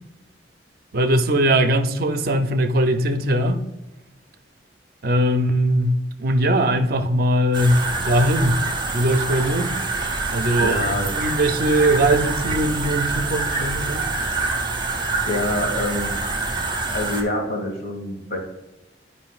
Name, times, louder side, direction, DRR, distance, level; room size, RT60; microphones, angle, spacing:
voice 1, 0.9-3.6 5.0-8.6 8.9-9.8 10.3-10.8 11.2-14.1, right 1 dB, 55° right, 0.6 m, -20 dB
sound 1, 7.5-17.2, right 3 dB, 25° right, 1.0 m, -26 dB
voice 2, 10.6-11.1 15.3-16.1 16.9-18.4, left 1 dB, 60° left, 2.0 m, -26 dB
9.8 x 5.1 x 2.4 m
head